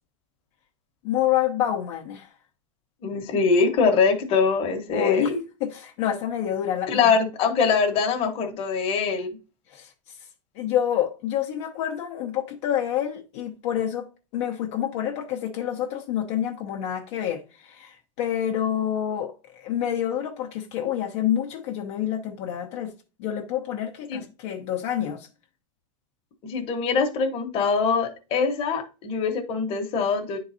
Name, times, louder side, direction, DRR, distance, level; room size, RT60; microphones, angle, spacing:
voice 1, 1.0-2.3 4.9-5.3 5.6-7.1 9.7-9.9 10.6-22.9 23.2-25.3, left 10 dB, 55° left, 0.9 m, -28 dB
voice 2, 3.0-5.4 6.9-9.4 24.1-24.2 26.4-30.4, left 5 dB, 35° left, 1.2 m, -23 dB
9.7 x 3.9 x 2.7 m
supercardioid pair, 145°, 17 cm